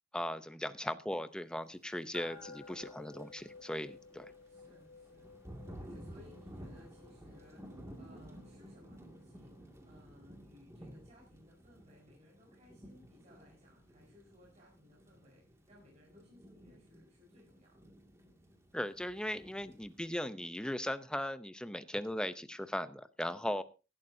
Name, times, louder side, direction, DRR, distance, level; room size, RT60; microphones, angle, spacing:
voice 1, 0.1-4.3 18.7-23.6, left 1 dB, 5° left, 11 dB, 0.6 m, -38 dB
sound 1, 2.1-9.8, left 4 dB, 55° left, 5.0 m, -56 dB
Thunder / Rain, 2.1-20.2, equal, 15° right, 2.2 m, -54 dB
voice 2, 4.4-17.9 18.2-18.6, left 1 dB, 35° right, -4 dB, 4.8 m, -62 dB
18.5 x 12.0 x 2.7 m, 0.31 s
head